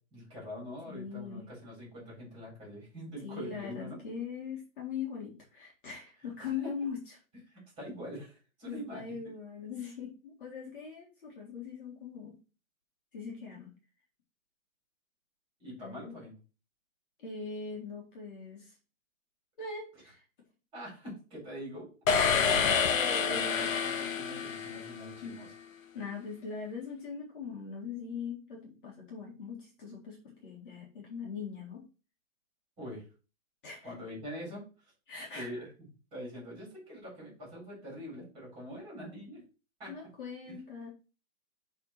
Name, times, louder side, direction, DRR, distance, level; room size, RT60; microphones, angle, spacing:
voice 1, 0.1-4.0 6.4-6.7 7.5-9.2 15.6-16.4 20.7-21.9 23.3-25.5 32.8-33.0 33.8-34.7 35.3-35.7 36.1-39.4 39.8-40.1 40.5-40.6, equal, 10° right, -4 dB, 4.1 m, -44 dB
voice 2, 0.9-1.5 3.2-7.0 8.7-12.4 13.1-13.7 15.8-16.2 17.2-18.7 19.6-20.2 22.2-23.7 25.2-25.4 25.9-31.9 33.6-33.9 35.1-35.7 39.9-40.9, left 5 dB, 40° left, -2 dB, 1.9 m, -41 dB
sound 1, 22.1-25.2, left 6 dB, 70° left, 1.2 m, -28 dB
6.9 x 3.7 x 4.6 m, 0.33 s
hypercardioid pair, 175°, 41 cm